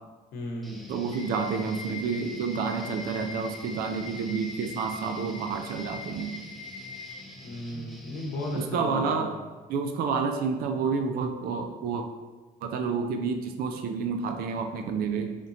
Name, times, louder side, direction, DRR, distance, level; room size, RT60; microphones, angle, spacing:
voice 1, 0.3-0.9 7.4-9.3, left 1 dB, 85° left, 0 dB, 0.8 m, -35 dB
Guitar, 0.6-8.7, left 1 dB, ahead, 0.5 m, -46 dB
voice 2, 0.9-6.4 8.5-9.3 9.7-12.1 12.6-15.3, right 5 dB, 65° right, 5 dB, 0.4 m, -29 dB
sound 1, 1.1-7.1, left 4 dB, 35° left, 1.2 m, -42 dB
3.5 x 2.7 x 3.7 m, 1.3 s
cardioid pair, 110°, 17 cm